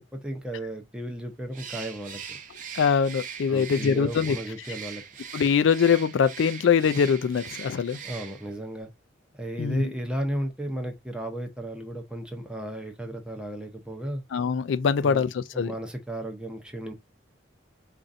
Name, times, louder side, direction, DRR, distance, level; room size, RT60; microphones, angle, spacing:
voice 1, 0.0-2.4 3.5-5.0 8.0-8.9 9.3-14.2 15.0-15.3 15.5-16.9, right 1 dB, 5° right, 0.6 m, -34 dB
Bird, 1.5-8.6, right 7 dB, 40° right, 0.6 m, -41 dB
voice 2, 2.7-4.4 5.3-8.0 9.6-9.9 14.3-15.7, left 6 dB, 70° left, 0.3 m, -23 dB
4.3 x 2.5 x 2.5 m
head